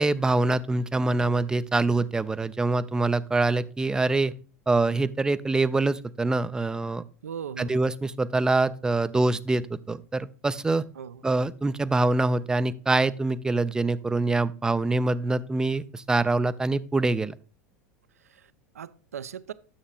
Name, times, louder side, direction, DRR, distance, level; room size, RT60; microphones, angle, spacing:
voice 1, 0.0-4.3 4.7-7.0 7.6-10.8 11.2-17.3, right 2 dB, 10° right, 0.4 m, -25 dB
voice 2, 7.2-7.8 10.9-11.2 14.9-15.1 18.2-19.5, right 8 dB, 70° right, 0.5 m, -39 dB
10.0 x 7.3 x 2.3 m
figure-of-eight pair, 85°, 8 cm